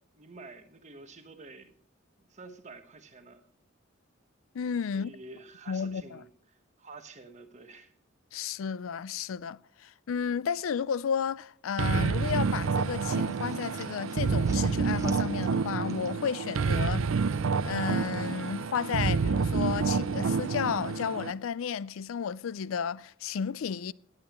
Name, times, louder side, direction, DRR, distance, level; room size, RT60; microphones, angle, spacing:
voice 1, 0.1-1.7 2.2-3.4 4.9-6.3 6.8-7.9, right 3 dB, 35° right, 1.3 m, -49 dB
voice 2, 4.5-5.1 5.7-6.2 8.3-17.1 17.6-23.9, left 7 dB, 80° left, 0.4 m, -32 dB
sound 1, 11.8-21.3, right 5 dB, 80° right, 0.5 m, -28 dB
sound 2, 12.8-16.4 16.7-18.1, right 4 dB, 15° right, 1.2 m, -53 dB
18.0 x 8.9 x 3.1 m
head